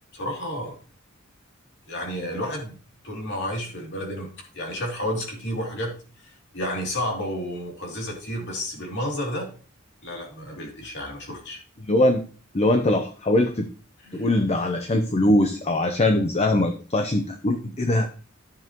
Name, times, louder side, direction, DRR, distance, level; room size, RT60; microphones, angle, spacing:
voice 1, 0.1-0.7 1.9-2.8 3.0-5.9 6.2-9.5 10.0-11.6 14.0-14.3 17.6-17.7, equal, 60° left, 0 dB, 2.9 m, -31 dB
voice 2, 11.8-12.2 12.5-13.7 14.1-18.1, left 1 dB, 30° left, 6 dB, 0.7 m, -22 dB
11.0 x 7.3 x 3.0 m, 0.38 s
head